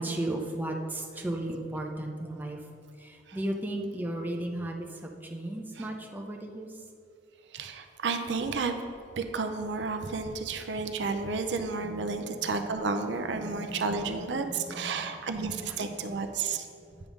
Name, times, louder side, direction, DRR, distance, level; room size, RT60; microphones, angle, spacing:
voice 1, 0.0-2.6 3.0-6.7 11.8-12.0 13.5-13.8 14.4-15.2 15.6-15.8 16.0-16.1, right 1 dB, 10° right, 1 dB, 0.6 m, -35 dB
voice 2, 7.5-8.8 9.2-16.7, right 4 dB, 65° right, 6 dB, 0.5 m, -32 dB
9.2 x 3.6 x 6.1 m, 2.5 s
head